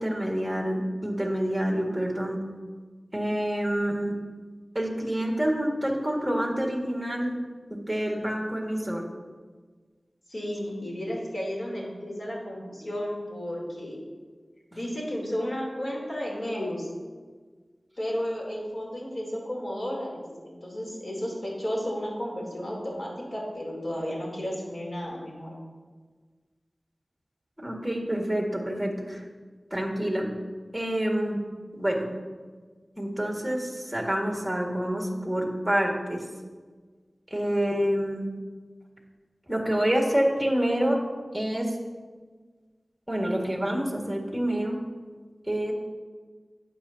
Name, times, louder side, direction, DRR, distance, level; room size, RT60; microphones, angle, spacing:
voice 1, 0.0-2.4 3.1-4.2 4.7-7.4 7.7-9.0 27.6-29.2 29.7-30.3 30.7-31.4 31.8-32.1 33.0-36.3 37.3-38.3 39.5-41.0 41.3-41.8 43.1-44.8 45.5-45.7, equal, 10° right, -1 dB, 1.9 m, -27 dB
voice 2, 10.3-14.0 14.7-16.9 18.0-25.5, equal, 60° left, -3 dB, 3.2 m, -33 dB
12.0 x 8.7 x 2.8 m, 1.5 s
wide cardioid pair, 55°, 0 cm